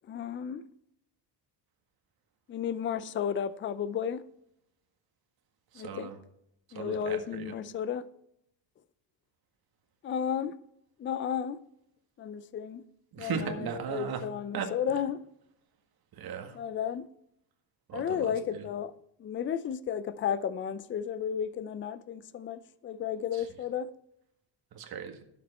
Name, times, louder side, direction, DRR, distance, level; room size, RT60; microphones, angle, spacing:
voice 1, 0.1-0.6 2.5-4.2 5.8-6.1 6.7-8.0 10.0-10.6 11.0-11.6 12.2-12.8 13.2-15.2 16.5-17.1 17.9-18.9 19.2-23.9, left 8 dB, 30° left, 0.5 m, -33 dB
voice 2, 5.7-6.2 6.7-7.5 13.1-14.2 14.5-14.7 16.1-16.6 17.9-18.7 23.3-23.5 24.7-25.2, right 7 dB, 55° right, 1.8 m, -37 dB
11.0 x 7.6 x 4.2 m
cardioid pair, 120°, 44 cm